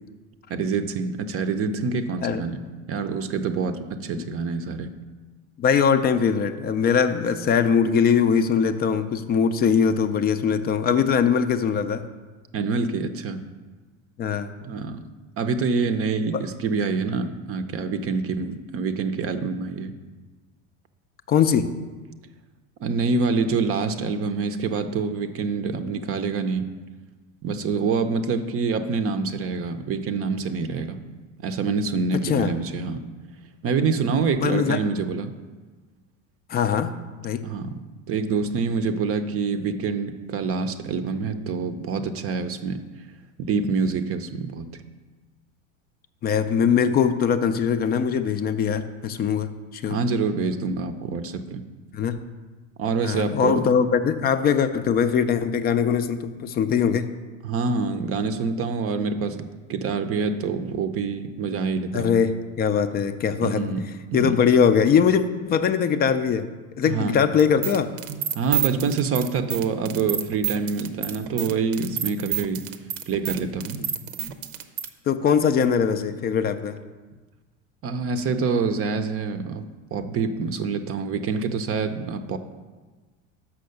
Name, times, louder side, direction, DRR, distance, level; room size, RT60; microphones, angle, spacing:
voice 1, 0.5-2.6 2.9-4.9 12.5-13.4 14.6-15.1 15.4-19.9 22.8-26.7 27.4-31.0 31.4-33.0 33.6-35.4 37.4-37.7 38.1-42.8 43.4-44.7 49.9-51.6 52.8-53.7 57.4-62.2 63.4-64.4 66.8-67.2 68.3-72.7 73.1-73.8 77.8-79.6 79.9-82.4, right 4 dB, 35° right, 9 dB, 0.6 m, -26 dB
voice 2, 5.6-12.1 14.2-14.5 16.3-16.4 21.3-21.7 32.1-32.5 34.4-34.8 36.5-36.9 37.2-37.5 46.2-50.0 51.9-52.2 53.0-57.1 61.9-63.6 64.1-66.5 66.8-67.9 75.1-76.8, left 7 dB, 25° left, 10 dB, 0.4 m, -21 dB
sound 1, 67.4-74.9, right 11 dB, 75° right, 0.8 m, -29 dB
6.0 x 5.7 x 6.5 m, 1.3 s
hypercardioid pair, 100°, 40 cm